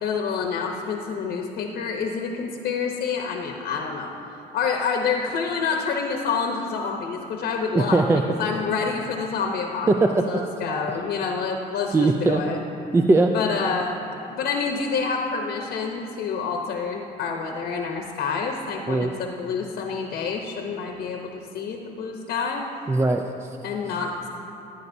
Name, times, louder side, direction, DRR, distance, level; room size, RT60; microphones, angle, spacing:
voice 1, 0.0-4.1 4.5-8.1 8.4-12.6 13.3-14.0 14.3-22.6 23.6-24.3, left 5 dB, 70° left, 2 dB, 0.9 m, -28 dB
voice 2, 7.7-8.2 9.9-10.3 11.9-12.4 12.9-13.3 18.9-19.1 22.9-23.6, right 2 dB, 15° right, 4 dB, 0.4 m, -20 dB
15.0 x 9.8 x 2.7 m, 2.8 s
cardioid pair, 110°, 17 cm